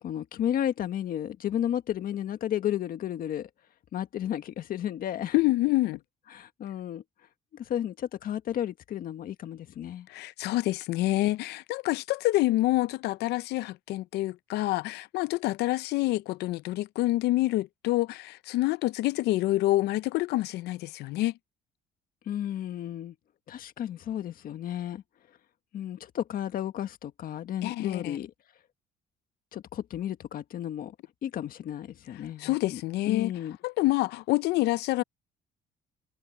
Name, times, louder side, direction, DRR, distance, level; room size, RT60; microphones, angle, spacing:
voice 1, 0.0-3.5 3.9-5.4 6.3-7.0 7.5-10.1 22.2-23.1 23.5-25.0 25.7-28.3 29.5-30.9 31.2-32.8 33.1-33.6, left 10 dB, 60° left, 1.6 m, -33 dB
voice 2, 5.3-6.0 10.1-21.3 27.6-28.2 32.4-33.3 33.6-35.0, left 17 dB, 80° left, 0.5 m, -27 dB
cardioid pair, 110°, 17 cm